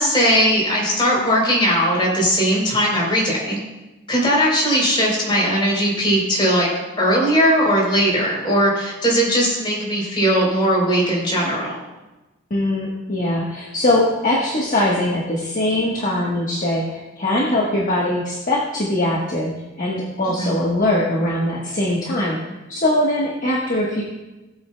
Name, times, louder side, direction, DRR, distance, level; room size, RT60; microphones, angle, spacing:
voice 1, 0.0-3.6 4.1-6.7 7.0-11.8 20.4-20.6, equal, 25° left, -3 dB, 3.6 m, -19 dB
voice 2, 12.5-22.4 22.7-24.0, left 1 dB, 40° left, -3 dB, 1.3 m, -21 dB
18.0 x 7.9 x 2.2 m, 1.1 s
head